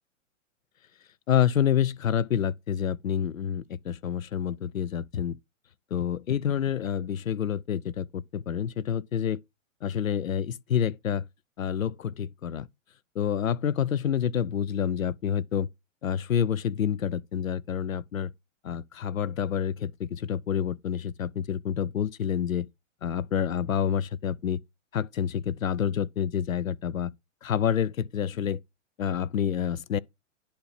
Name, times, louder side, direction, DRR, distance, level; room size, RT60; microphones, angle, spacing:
voice 1, 1.3-5.4 5.9-9.4 9.8-11.3 11.6-12.7 13.1-15.7 16.0-18.3 18.6-22.7 23.0-24.6 24.9-27.1 27.4-28.6 29.0-30.0, left 9 dB, 90° left, 0.7 m, -28 dB
10.5 x 4.2 x 5.8 m
hypercardioid pair, 120°, 39 cm